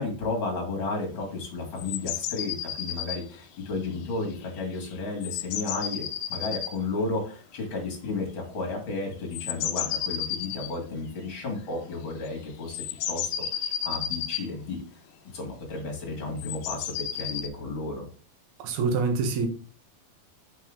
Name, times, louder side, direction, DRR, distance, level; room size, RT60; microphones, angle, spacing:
voice 1, 0.0-13.3 13.8-14.8 15.3-18.0, left 3 dB, 40° left, 0 dB, 2.7 m, -33 dB
sound 1, 1.8-3.2 4.4-4.6 4.9-5.0 5.2-6.7 9.3-10.7 11.9-12.0 12.3-12.4 12.7-14.4 16.4-17.5, left 10 dB, 80° left, 1.8 m, -32 dB
voice 2, 18.6-19.5, right 4 dB, 60° right, 4 dB, 2.4 m, -25 dB
7.1 x 5.5 x 3.8 m, 0.37 s
omnidirectional pair, 4.1 m